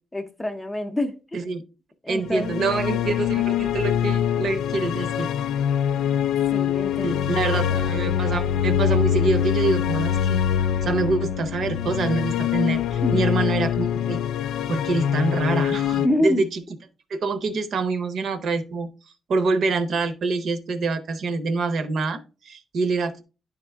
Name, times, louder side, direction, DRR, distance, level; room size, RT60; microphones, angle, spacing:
voice 1, 0.1-1.4 2.0-2.8 6.5-7.8 13.0-13.3 16.0-16.5, left 1 dB, 10° left, 0.6 m, -27 dB
voice 2, 2.1-5.3 7.0-10.4 10.6-14.2 14.7-16.5 17.1-18.9 19.3-23.2, right 3 dB, 55° right, 0.7 m, -26 dB
sound 1, 2.2-16.1, left 9 dB, 85° left, 0.3 m, -24 dB
10.0 x 3.5 x 3.4 m
cardioid pair, 145°, 0 cm